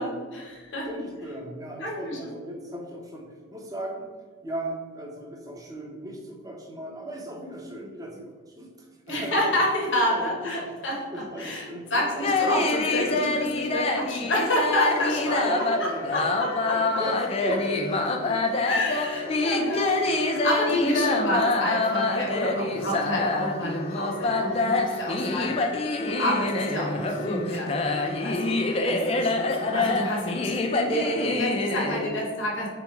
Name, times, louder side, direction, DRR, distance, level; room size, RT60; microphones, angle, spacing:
voice 1, 0.0-0.9 1.8-2.3 9.1-15.5 16.1-17.0 18.6-25.5 26.0-28.5 28.8-32.7, equal, 60° left, -2 dB, 0.9 m, -29 dB
voice 2, 0.8-4.1 4.4-9.6 10.1-10.8 11.1-12.3 15.3-16.3 16.7-18.7 19.2-19.4 20.0-20.4 20.7-21.4 22.8-23.3 25.2-25.5 30.8-31.3 31.9-32.0, right 1 dB, 15° right, 0 dB, 0.6 m, -37 dB
sound 1, 12.2-32.1, left 3 dB, 30° left, 0.3 m, -26 dB
3.5 x 3.0 x 4.6 m, 1.5 s
head